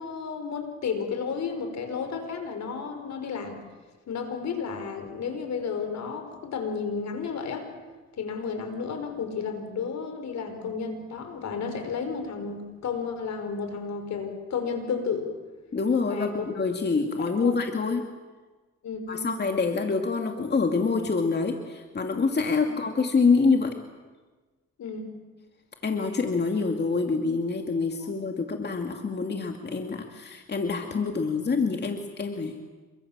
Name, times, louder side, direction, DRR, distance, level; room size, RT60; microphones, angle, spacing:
voice 1, 0.0-3.6 4.1-7.7 8.2-15.3 16.1-16.5 17.2-17.6 18.8-19.3 24.8-25.1 28.0-28.1, left 5 dB, 65° left, 7 dB, 5.6 m, -32 dB
voice 2, 15.7-18.1 19.1-23.7 25.8-32.7, left 4 dB, 35° left, 4 dB, 2.5 m, -26 dB
28.0 x 24.0 x 7.5 m, 1.3 s
cardioid pair, 90°, 30 cm